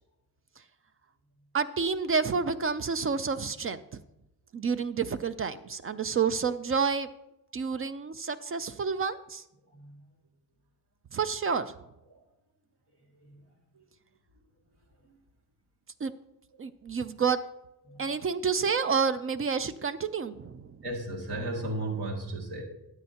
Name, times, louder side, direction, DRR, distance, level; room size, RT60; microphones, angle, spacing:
voice 1, 1.5-3.8 4.5-7.1 7.5-9.4 11.1-11.8 16.0-16.1 16.6-17.4 18.0-20.8, right 5 dB, 35° right, 13 dB, 0.4 m, -29 dB
voice 2, 9.7-10.0 12.1-12.2 13.1-13.4 13.7-13.8 15.0-15.1 17.9-18.0 20.8-22.6, right 1 dB, 75° right, -1 dB, 2.3 m, -35 dB
13.0 x 8.6 x 2.8 m, 0.88 s
cardioid pair, 85°, 39 cm